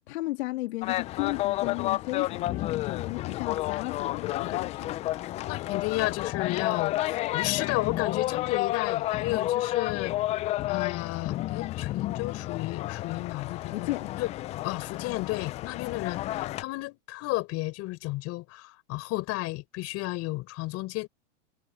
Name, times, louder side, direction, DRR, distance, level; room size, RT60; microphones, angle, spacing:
voice 1, 0.0-5.0 13.7-14.1, left 18 dB, 65° left, 2.3 m, -34 dB
sound 1, 0.8-16.6, left 15 dB, 20° left, 0.3 m, -31 dB
voice 2, 5.5-10.1 10.7-14.3 14.6-21.1, left 20 dB, 45° left, 6.3 m, -33 dB
hypercardioid pair, 120°, 36 cm